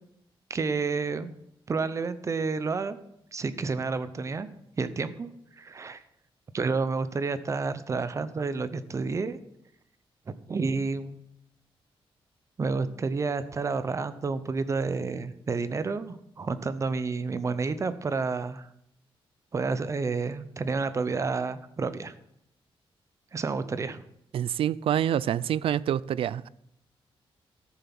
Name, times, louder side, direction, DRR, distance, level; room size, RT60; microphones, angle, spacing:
voice 1, 0.5-1.3 1.7-3.0 3.3-4.5 4.8-5.3 5.6-6.0 6.5-9.4 10.5-11.2 12.6-18.7 19.5-22.1 23.3-24.0, right 4 dB, 30° right, 0.8 m, -30 dB
voice 2, 24.3-26.5, right 10 dB, 70° right, 0.4 m, -27 dB
13.5 x 7.0 x 6.1 m
wide cardioid pair, 150°, 10 cm